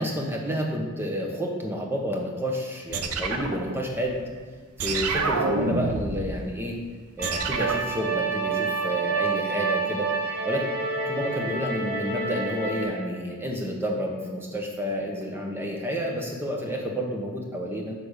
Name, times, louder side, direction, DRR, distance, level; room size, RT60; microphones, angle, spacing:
voice 1, 0.0-4.2 4.8-6.8 7.2-10.1 10.4-10.6 11.0-17.9, equal, 10° right, 0 dB, 0.9 m, -30 dB
sound 1, 2.9-4.3 4.8-6.3 7.2-7.9, right 3 dB, 85° right, 0.7 m, -28 dB
sound 2, 7.2-12.8, right 4 dB, 45° right, 1.4 m, -28 dB
9.8 x 3.5 x 6.5 m, 1.5 s
head